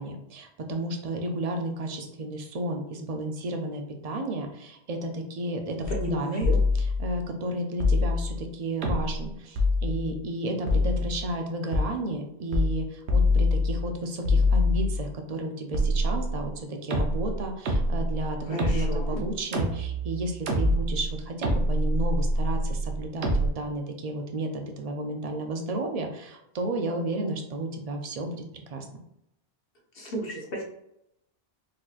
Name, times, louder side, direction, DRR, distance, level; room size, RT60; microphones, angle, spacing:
voice 1, 0.0-6.5 7.0-28.4 28.7-28.8, right 1 dB, 45° right, 3 dB, 0.5 m, -32 dB
sound 1, 5.8-6.1 6.4-7.2 7.8-8.4 8.8-9.2 9.6-10.2 10.7-11.3 11.7-11.9 12.5-12.8 13.1-13.9 14.2-15.1 15.7-16.5 16.9-23.5, left 2 dB, 80° right, 1.0 m, -25 dB
voice 2, 5.9-6.6 18.4-19.2 29.9-30.6, equal, 65° left, -1 dB, 1.1 m, -33 dB
4.1 x 2.8 x 2.4 m, 0.80 s
omnidirectional pair, 1.1 m